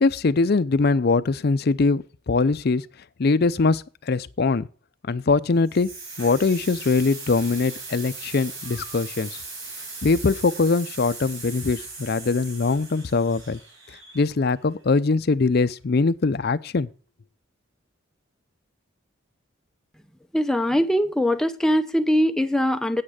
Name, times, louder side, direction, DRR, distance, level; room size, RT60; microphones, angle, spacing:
voice 1, 0.0-2.8 3.2-4.7 5.1-5.9 6.2-9.3 10.0-13.6 14.1-16.9, left 3 dB, 50° left, 0.5 m, -22 dB
sound 1, 5.7-14.5, right 3 dB, 90° right, 4.9 m, -39 dB
voice 2, 20.3-23.0, equal, 5° left, 0.6 m, -21 dB
8.8 x 8.6 x 4.9 m
head